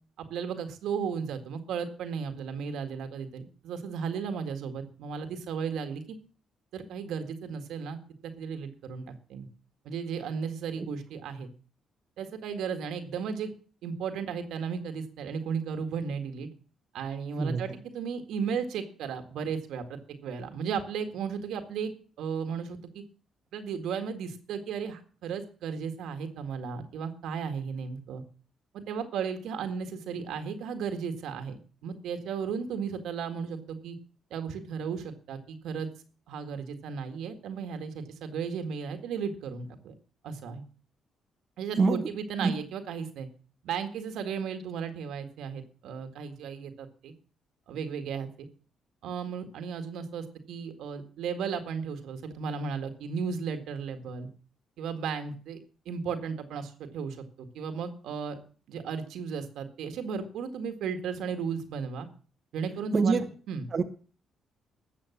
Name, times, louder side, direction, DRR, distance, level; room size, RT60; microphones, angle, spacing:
voice 1, 0.2-6.2 6.7-9.5 9.9-11.5 12.2-13.5 13.8-16.5 16.9-21.9 22.2-23.0 23.5-28.2 28.7-34.0 34.3-35.9 36.3-39.9 40.2-40.6 41.6-43.3 43.6-47.1 47.7-48.3 49.0-54.3 54.8-55.6 55.9-58.4 58.7-62.1 62.5-63.7, right 6 dB, 80° right, 7 dB, 1.9 m, -35 dB
voice 2, 41.8-42.1 42.4-42.5 62.9-63.3 63.7-63.8, right 4 dB, 40° right, 5 dB, 1.2 m, -25 dB
13.0 x 7.6 x 7.2 m, 0.40 s
cardioid pair, 90°, 0 cm